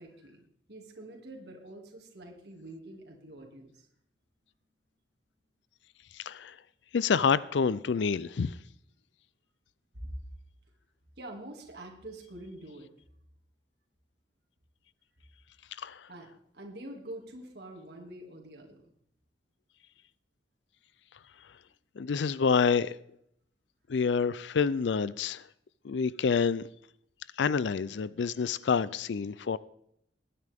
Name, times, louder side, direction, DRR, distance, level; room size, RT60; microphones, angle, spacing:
voice 1, 0.0-3.9 9.9-10.2 11.2-12.9 16.1-16.3 16.5-18.9, right 1 dB, 65° right, 2.4 m, -46 dB
voice 2, 6.1-6.6 6.9-8.6 15.8-16.1 22.0-23.0 23.9-25.4 25.8-26.6 27.4-29.6, left 5 dB, 80° left, 0.4 m, -28 dB
20.5 x 9.7 x 3.6 m
head